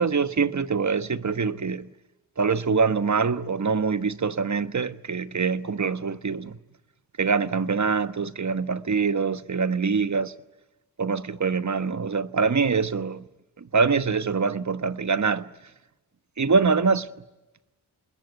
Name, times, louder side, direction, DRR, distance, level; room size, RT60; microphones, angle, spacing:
voice 1, 0.0-1.9 2.4-6.6 7.2-10.3 11.0-13.2 13.6-15.5 16.4-17.1, right 5 dB, 45° right, 1.3 m, -24 dB
27.0 x 21.0 x 9.4 m
cardioid pair, 45°, 41 cm